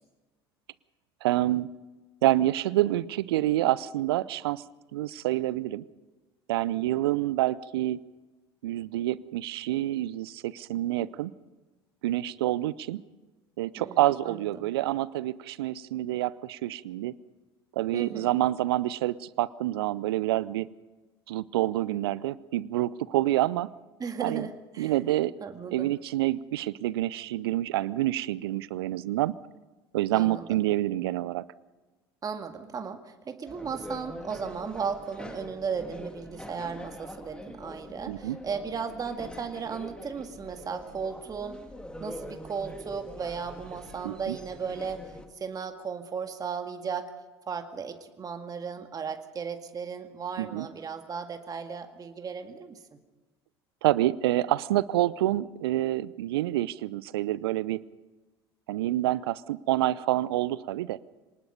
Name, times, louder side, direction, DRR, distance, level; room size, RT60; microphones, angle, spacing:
voice 1, 1.2-1.7 2.2-4.6 4.9-5.8 6.5-8.0 8.6-11.3 12.0-13.0 13.6-17.1 17.8-20.7 21.3-23.7 24.2-24.5 24.8-25.3 25.7-29.4 29.9-31.4 38.1-38.4 44.0-44.4 50.4-50.7 53.8-57.8 58.7-61.0, right 15 dB, 65° right, 21 dB, 0.7 m, -27 dB
voice 2, 13.8-14.7 17.9-18.4 24.0-24.9 25.4-25.9 30.1-30.6 32.2-41.6 42.0-45.0 45.4-47.1 47.5-52.8, right 6 dB, 30° right, 6 dB, 1.9 m, -36 dB
sound 1, 33.5-45.3, left 1 dB, 5° left, 2.4 m, -44 dB
25.0 x 19.5 x 5.4 m, 1.2 s
figure-of-eight pair, 70°, 13 cm